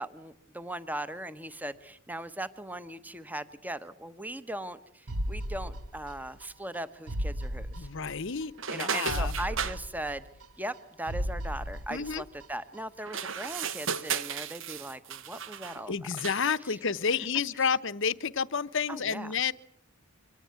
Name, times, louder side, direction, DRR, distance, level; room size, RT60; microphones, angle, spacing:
voice 1, 0.0-7.9 8.7-10.2 10.6-15.9 16.7-16.8 17.6-17.7 18.9-19.3, right 1 dB, 5° right, 13 dB, 1.0 m, -39 dB
sound 1, 5.1-6.5 6.7-6.8 7.1-8.5 8.7-8.8 9.1-10.8 11.1-12.5 12.7-12.8, equal, 80° right, 1.1 m, -35 dB
voice 2, 7.8-9.3 11.9-12.2 15.9-19.5, left 6 dB, 55° left, 16 dB, 0.9 m, -30 dB
sound 2, 8.6-9.8 13.0-15.8 16.2-16.5, right 7 dB, 60° right, 1.3 m, -35 dB
24.5 x 18.0 x 9.4 m, 0.74 s
head